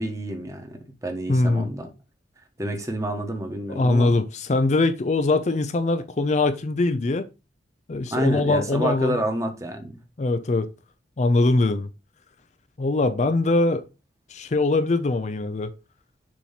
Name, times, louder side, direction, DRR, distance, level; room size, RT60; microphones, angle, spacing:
voice 1, 0.0-1.9 2.6-4.1 8.1-10.0, right 1 dB, 15° right, 1.1 m, -29 dB
voice 2, 1.3-1.7 3.7-7.2 7.9-9.2 10.2-10.7 11.2-11.9 12.8-13.8 14.3-15.7, left 2 dB, 40° left, 0.4 m, -22 dB
7.0 x 3.0 x 5.7 m
head